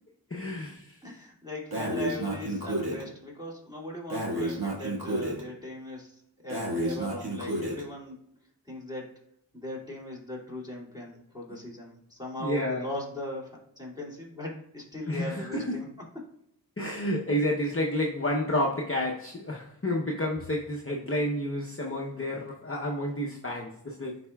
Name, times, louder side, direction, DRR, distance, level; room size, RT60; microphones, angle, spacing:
voice 1, 0.3-1.0 12.3-12.9 15.1-15.8 16.8-24.2, left 1 dB, 30° left, -2 dB, 0.8 m, -30 dB
voice 2, 1.0-8.2 8.6-9.1 9.5-15.9 16.1-16.2, left 1 dB, 10° right, -4 dB, 2.4 m, -39 dB
Breathing, 1.7-3.0 4.1-5.4 6.5-7.8, right 1 dB, 55° right, 1.8 m, -31 dB
10.5 x 4.2 x 2.3 m, 0.75 s
wide cardioid pair, 45°, 43 cm